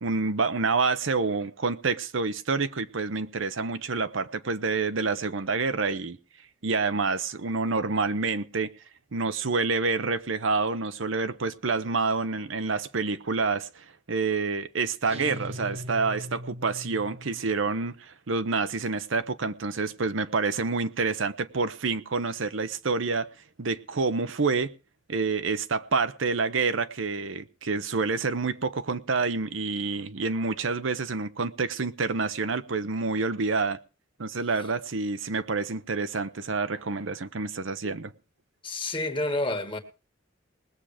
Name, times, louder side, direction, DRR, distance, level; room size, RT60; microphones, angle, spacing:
voice 1, 0.0-6.2 6.6-8.7 9.1-23.3 23.6-24.7 25.1-33.8 34.2-38.1, right 4 dB, 75° right, 0.8 m, -28 dB
sound 1, 15.1-17.7, equal, 30° right, 1.1 m, -39 dB
voice 2, 38.6-39.8, left 2 dB, 25° left, 1.7 m, -29 dB
20.0 x 7.4 x 5.0 m
head